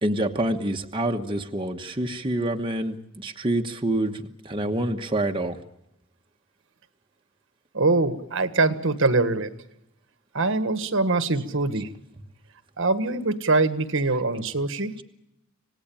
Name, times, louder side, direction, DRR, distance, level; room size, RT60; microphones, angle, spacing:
voice 1, 0.0-5.6 11.3-11.4 11.7-11.8 15.0-15.1, right 1 dB, 25° right, 3 dB, 1.2 m, -27 dB
voice 2, 7.7-9.5 10.3-11.9 12.8-14.9, right 3 dB, 60° right, 12 dB, 1.6 m, -23 dB
27.0 x 18.0 x 8.8 m, 0.86 s
head